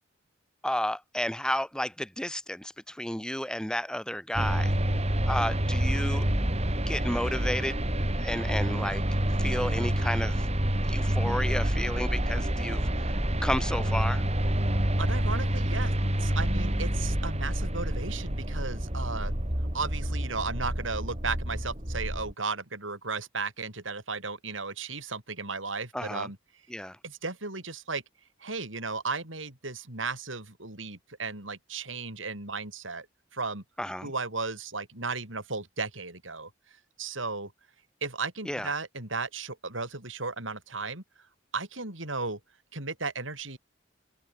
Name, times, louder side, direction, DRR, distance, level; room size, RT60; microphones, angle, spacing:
voice 1, 0.6-4.8 5.3-6.3 6.9-7.8 8.2-9.0 9.4-10.5 10.8-12.9 13.4-14.2 25.9-26.3 26.7-27.0 33.8-34.1 38.5-38.7, left 1 dB, 5° left, 2.1 m, -32 dB
sound 1, 4.3-22.3, right 1 dB, 35° right, 4.1 m, -28 dB
voice 2, 14.7-19.3 19.7-26.4 27.0-28.0 28.4-33.1 33.3-33.6 34.0-36.5 37.0-37.5 38.0-41.0 41.5-42.4 42.7-43.6, right 4 dB, 75° right, 7.2 m, -35 dB
head